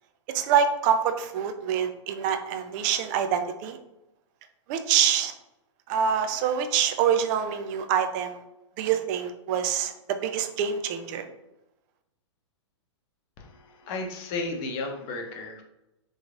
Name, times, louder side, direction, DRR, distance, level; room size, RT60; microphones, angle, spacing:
voice 1, 0.3-3.8 4.7-5.3 5.9-8.4 8.8-11.3, right 8 dB, 40° right, 8 dB, 0.5 m, -25 dB
voice 2, 13.4-15.6, left 3 dB, 35° left, 2 dB, 0.8 m, -34 dB
3.9 x 3.0 x 2.5 m, 0.92 s
hypercardioid pair, 115°, 15 cm